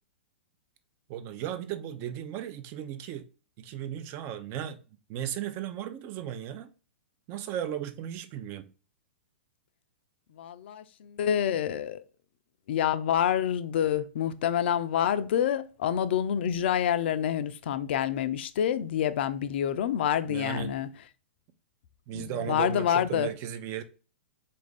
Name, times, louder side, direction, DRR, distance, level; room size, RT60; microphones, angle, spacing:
voice 1, 1.1-3.3 3.6-4.8 5.1-6.7 7.3-8.7 20.3-20.7 22.1-23.8, right 10 dB, 40° right, 0.5 m, -35 dB
voice 2, 10.4-12.0 12.7-20.9 22.1-23.3, left 9 dB, 60° left, 0.4 m, -27 dB
3.9 x 2.5 x 3.4 m
hypercardioid pair, 110°, 7 cm